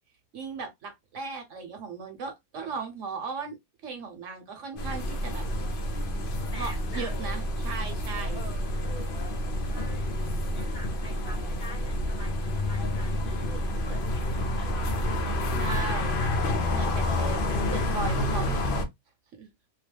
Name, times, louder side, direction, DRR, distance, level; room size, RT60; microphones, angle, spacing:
voice 1, 0.3-3.6 3.8-5.4 6.6-8.4 15.6-16.1 16.7-17.4 17.6-18.8 19.3-19.5, right 5 dB, 65° right, 1.1 m, -37 dB
sound 1, 4.8-18.8, left 1 dB, 55° left, 0.6 m, -29 dB
voice 2, 6.4-7.1 8.3-9.1 9.7-10.1 10.4-14.9 15.2-17.6, left 1 dB, 35° left, 1.2 m, -46 dB
2.9 x 2.1 x 3.2 m
omnidirectional pair, 1.4 m